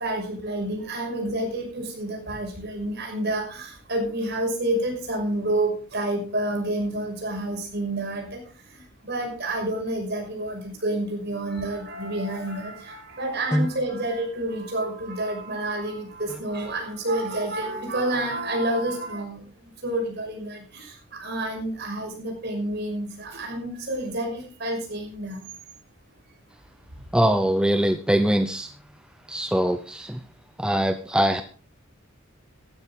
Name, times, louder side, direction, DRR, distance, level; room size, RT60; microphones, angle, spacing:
voice 1, 0.0-8.4 8.7-19.4 19.8-25.4, right 1 dB, 50° right, 1 dB, 5.9 m, -29 dB
voice 2, 27.1-28.7 29.3-30.2 30.6-31.4, right 1 dB, 5° right, 8 dB, 0.6 m, -22 dB
15.0 x 12.0 x 3.7 m, 0.38 s
head